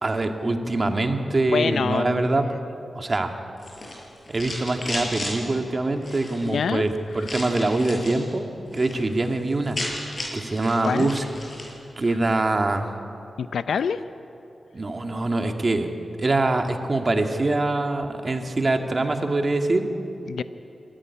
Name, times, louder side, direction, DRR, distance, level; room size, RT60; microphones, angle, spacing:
voice 1, 0.0-2.5 3.0-3.3 4.3-8.5 8.7-9.8 10.3-11.2 12.0-12.8 14.7-15.9 16.2-19.9, right 2 dB, 40° right, 4 dB, 2.2 m, -24 dB
voice 2, 1.5-2.3 6.5-6.8 10.8-11.1 13.4-14.0 20.3-20.4, left 6 dB, 90° left, 12 dB, 0.5 m, -25 dB
sound 1, 3.6-5.3 6.0-6.5 7.2-8.2 8.6-9.0 9.2-9.3 9.5-11.7, left 1 dB, 40° left, 7.5 m, -34 dB
26.0 x 14.0 x 9.9 m, 2.8 s
cardioid pair, 70°, 0 cm